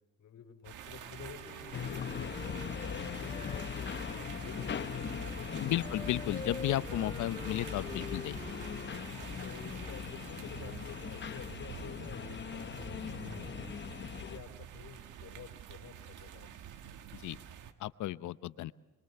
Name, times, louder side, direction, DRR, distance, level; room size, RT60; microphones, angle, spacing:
voice 1, 0.2-6.0 9.0-13.5 14.0-16.5 17.2-17.5, left 7 dB, 60° left, 4 dB, 3.4 m, -51 dB
sound 1, 0.6-17.7, right 9 dB, 85° right, 1.5 m, -48 dB
Wind instrument woodwind instrument, 0.9-4.5 4.8-9.0, left 3 dB, 20° left, 5.4 m, -48 dB
sound 2, 1.7-14.4, left 7 dB, 35° left, 0.8 m, -40 dB
voice 2, 5.6-8.4 17.1-17.4 17.8-18.7, left 14 dB, 75° left, 15 dB, 0.8 m, -34 dB
26.5 x 22.5 x 6.8 m, 1.1 s
cardioid pair, 90°, 30 cm